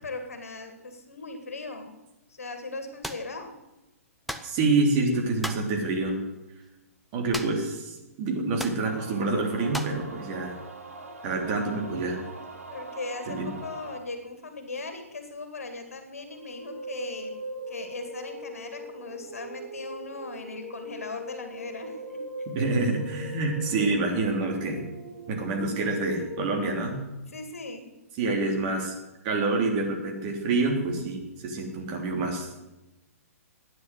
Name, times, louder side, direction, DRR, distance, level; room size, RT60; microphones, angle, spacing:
voice 1, 0.0-2.0 2.3-3.5 12.7-17.4 17.7-22.2 27.3-27.9, left 3 dB, 65° left, 7 dB, 2.3 m, -38 dB
sound 1, 3.0-3.3 4.3-4.5 5.4-5.7 7.3-7.7 8.0-8.1 8.6-8.8 9.7-10.0, equal, ahead, 0.8 m, -35 dB
voice 2, 4.4-6.2 7.1-10.6 11.2-12.2 13.3-13.5 22.5-24.8 25.3-27.0 28.2-28.9 29.2-32.5, right 3 dB, 35° right, 1 dB, 3.6 m, -27 dB
sound 2, 8.9-14.0, right 2 dB, 65° right, 2.0 m, -42 dB
sound 3, 16.2-26.5, equal, 90° right, 5.0 m, -40 dB
13.5 x 9.6 x 8.0 m, 0.98 s
figure-of-eight pair, 120°, 8 cm